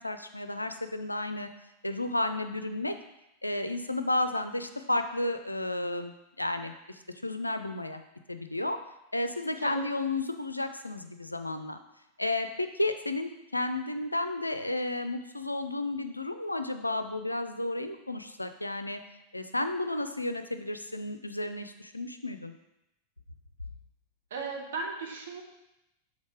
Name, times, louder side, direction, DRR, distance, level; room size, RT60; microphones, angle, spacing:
voice 1, 0.0-1.5 1.8-3.0 3.4-8.0 8.3-8.8 9.1-11.8 12.2-19.0 19.3-22.5, left 2 dB, 85° left, 8 dB, 0.4 m, -32 dB
voice 2, 24.3-25.4, right 4 dB, 60° right, 1 dB, 1.1 m, -36 dB
6.3 x 3.6 x 4.8 m, 0.89 s
figure-of-eight pair, 90°, 0 cm